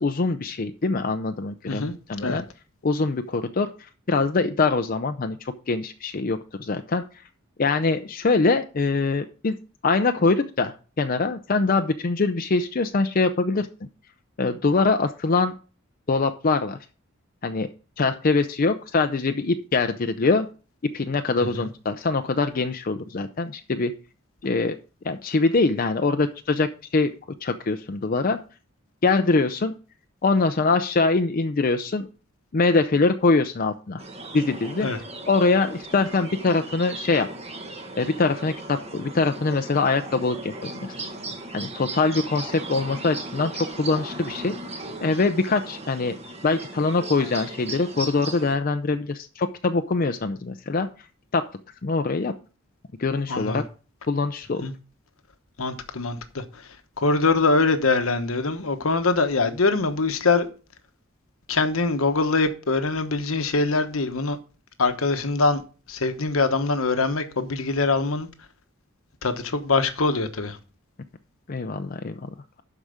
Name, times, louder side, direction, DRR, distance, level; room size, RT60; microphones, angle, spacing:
voice 1, 0.0-2.4 2.8-3.7 4.1-7.0 7.6-9.6 9.8-13.7 14.4-15.5 16.1-16.8 17.4-17.7 18.0-20.5 20.8-23.9 24.4-24.8 25.0-27.1 27.4-28.4 29.0-29.7 30.2-32.1 32.5-34.0 34.3-34.9 35.3-37.3 38.0-40.9 41.5-44.5 45.0-46.1 46.4-50.9 51.3-51.4 51.8-52.3 53.0-53.6 54.1-54.7 71.5-72.3, left 3 dB, 45° left, 0.5 m, -23 dB
sound 1, 34.0-48.6, right 2 dB, 30° right, 1.4 m, -37 dB
voice 2, 53.3-53.6 54.6-54.7 55.6-56.4 57.0-60.5 61.5-64.4 64.8-65.6 65.9-68.3 69.2-70.6, left 3 dB, 90° left, 1.1 m, -23 dB
12.0 x 4.9 x 4.9 m
head